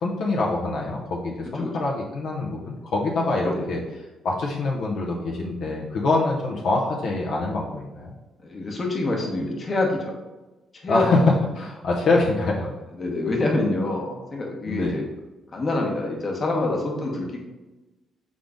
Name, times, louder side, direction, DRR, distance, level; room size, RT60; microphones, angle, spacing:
voice 1, 0.0-3.8 4.2-8.1 10.9-11.2 11.5-12.7 14.7-15.0, left 2 dB, 75° left, -3 dB, 0.7 m, -25 dB
voice 2, 8.4-10.1 10.7-11.2 12.9-15.0 15.5-17.4, left 2 dB, 40° left, 0 dB, 1.0 m, -26 dB
3.9 x 3.7 x 3.6 m, 1.1 s
cardioid pair, 90°, 0 cm